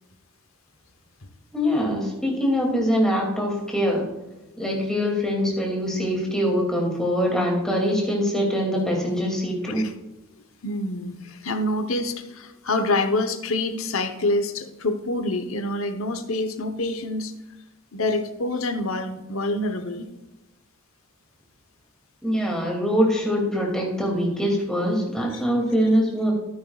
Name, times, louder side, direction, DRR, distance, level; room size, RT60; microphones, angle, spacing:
voice 1, 1.5-4.0 4.6-9.8 22.2-26.3, equal, 5° left, -2 dB, 2.5 m, -23 dB
voice 2, 10.6-17.3 17.9-20.1 25.3-25.4, left 2 dB, 75° left, 8 dB, 1.0 m, -26 dB
13.0 x 9.3 x 2.4 m, 1.0 s
head